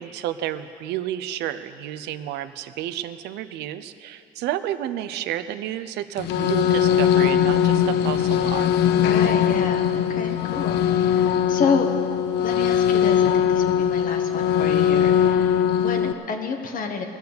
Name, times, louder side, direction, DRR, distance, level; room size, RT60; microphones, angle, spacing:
voice 1, 0.0-8.7, right 12 dB, 85° right, 12 dB, 0.7 m, -31 dB
sound 1, 6.2-16.1, left 9 dB, 80° left, 0.6 m, -20 dB
voice 2, 8.9-11.9 12.4-17.0, left 5 dB, 55° left, 4 dB, 1.3 m, -29 dB
20.5 x 7.0 x 6.7 m, 2.7 s
cardioid pair, 110°, 17 cm